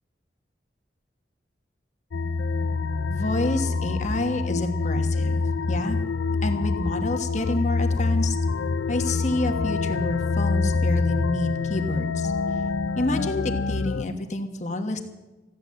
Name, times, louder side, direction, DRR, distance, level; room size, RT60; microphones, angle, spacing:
sound 1, 2.1-14.0, left 4 dB, 90° left, 0.5 m, -26 dB
voice 1, 3.1-5.4 5.7-6.0 6.4-8.4 8.9-12.3 13.0-15.0, left 2 dB, 40° left, 5 dB, 1.4 m, -28 dB
15.5 x 10.5 x 7.6 m, 1.2 s
head